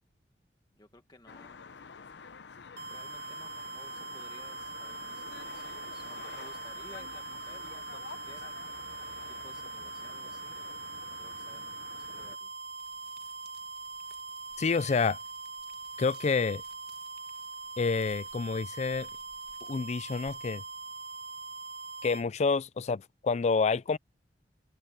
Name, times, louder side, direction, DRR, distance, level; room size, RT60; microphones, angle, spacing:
voice 1, 0.8-1.7 2.9-10.7 11.1-12.5, left 2 dB, 25° left, 1.4 m, -56 dB
sound 1, 1.3-12.4, left 5 dB, 75° left, 0.7 m, -48 dB
sound 2, 2.8-22.3, right 3 dB, 80° right, 1.2 m, -42 dB
sound 3, 12.8-20.6, right 6 dB, 60° right, 2.1 m, -62 dB
voice 2, 14.6-15.2 16.0-16.6 17.8-19.1 19.6-20.6 22.0-24.0, left 4 dB, 40° left, 0.4 m, -28 dB
open air
head